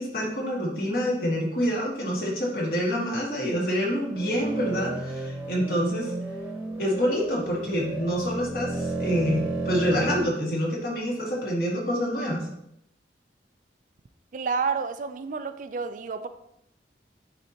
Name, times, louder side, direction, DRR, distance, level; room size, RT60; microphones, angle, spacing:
voice 1, 0.0-6.1 6.8-12.5, equal, 55° left, -3 dB, 2.0 m, -27 dB
sound 1, 4.1-10.3, right 2 dB, 10° right, 1.0 m, -32 dB
voice 2, 14.3-16.3, right 5 dB, 45° right, 10 dB, 0.4 m, -29 dB
9.6 x 4.1 x 2.9 m, 0.77 s
head